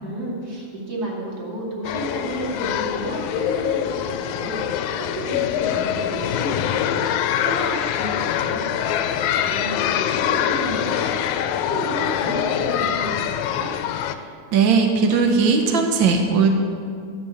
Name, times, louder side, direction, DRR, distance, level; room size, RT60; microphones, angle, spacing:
voice 1, 0.0-13.7, right 2 dB, 35° right, -4 dB, 2.6 m, -32 dB
sound 1, 1.8-14.2, left 10 dB, 80° left, 1.9 m, -24 dB
voice 2, 14.5-16.5, right 5 dB, 90° right, 3 dB, 1.0 m, -18 dB
13.0 x 6.7 x 7.3 m, 2.3 s
omnidirectional pair, 3.4 m